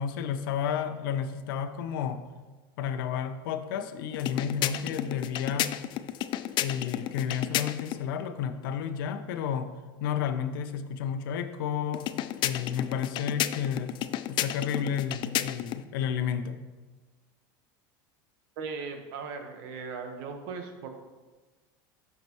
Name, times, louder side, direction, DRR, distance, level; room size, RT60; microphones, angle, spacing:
voice 1, 0.0-2.2 2.8-5.7 6.6-9.7 10.0-12.1 12.4-13.9 14.3-16.6, left 8 dB, 80° left, 9 dB, 0.8 m, -31 dB
sound 1, 4.1-8.0 11.9-15.8, left 12 dB, 45° left, 0.4 m, -32 dB
voice 2, 18.6-20.9, right 5 dB, 65° right, 4 dB, 1.4 m, -38 dB
14.0 x 5.8 x 3.1 m, 1.3 s
supercardioid pair, 115°, 11 cm